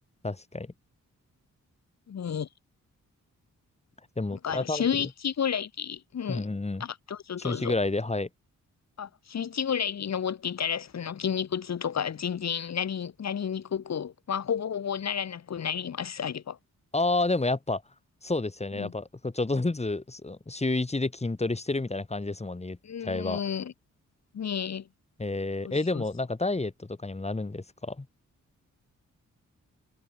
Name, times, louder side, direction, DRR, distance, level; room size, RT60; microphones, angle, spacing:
voice 1, 0.2-0.7 4.2-4.8 6.3-6.8 7.4-8.3 16.9-17.8 18.2-23.4 25.2-28.1, left 2 dB, 20° left, 1.8 m, -30 dB
voice 2, 2.1-2.5 4.3-6.5 6.8-7.7 9.0-16.6 18.8-18.9 22.8-23.7 24.3-24.9 25.6-26.0, left 8 dB, 55° left, 1.2 m, -31 dB
cardioid pair, 60°, 32 cm